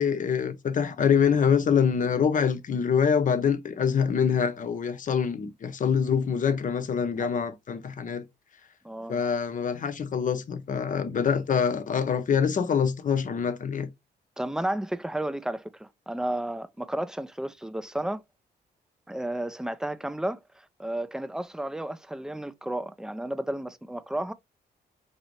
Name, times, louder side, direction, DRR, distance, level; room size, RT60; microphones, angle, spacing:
voice 1, 0.0-8.3 9.1-13.9, left 7 dB, 50° left, 0.7 m, -25 dB
voice 2, 8.8-9.2 14.4-18.2 19.1-24.3, right 1 dB, 5° right, 0.4 m, -32 dB
4.3 x 2.6 x 3.0 m
cardioid pair, 80°, 17 cm